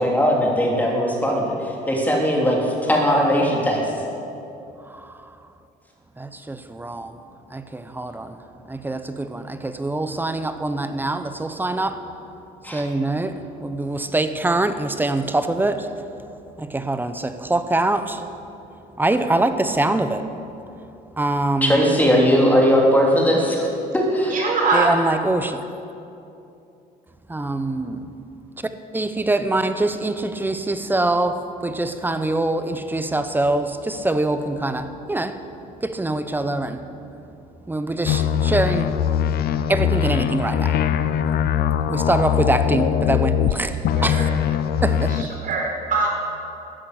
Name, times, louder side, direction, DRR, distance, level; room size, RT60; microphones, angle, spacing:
voice 1, 0.0-1.4 1.9-3.8 12.6-12.8 21.6-23.7 23.9-24.3, equal, 10° left, -1 dB, 3.1 m, -18 dB
voice 2, 4.8-5.4 6.2-7.2 7.5-12.1 12.6-15.9 16.6-18.3 19.0-20.3 20.8-20.9 21.2-21.9 24.7-25.6 27.3-28.1 28.9-35.4 35.8-36.9 37.6-39.0 39.7-40.9 41.9-44.3 44.8-45.4, right 2 dB, 10° right, 10 dB, 0.9 m, -24 dB
voice 3, 24.3-24.9 44.0-44.3 45.2-46.1, right 3 dB, 55° right, -1 dB, 4.3 m, -22 dB
sound 1, 38.0-43.5 43.8-45.2, left 9 dB, 65° left, 0.7 m, -21 dB
14.0 x 10.5 x 8.3 m, 2.8 s
cardioid pair, 110°, 17 cm